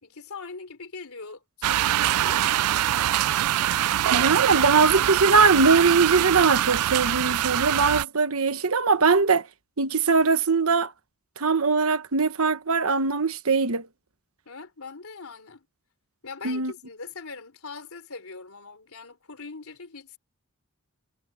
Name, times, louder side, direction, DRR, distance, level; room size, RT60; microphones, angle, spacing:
voice 1, 0.0-2.7 14.4-15.7 16.2-20.2, left 4 dB, 70° left, 3.5 m, -41 dB
sound 1, 1.6-8.1, right 12 dB, 85° right, 0.4 m, -23 dB
voice 2, 4.1-9.5 9.8-10.9 11.4-13.9 16.4-16.7, right 4 dB, 65° right, 1.2 m, -21 dB
head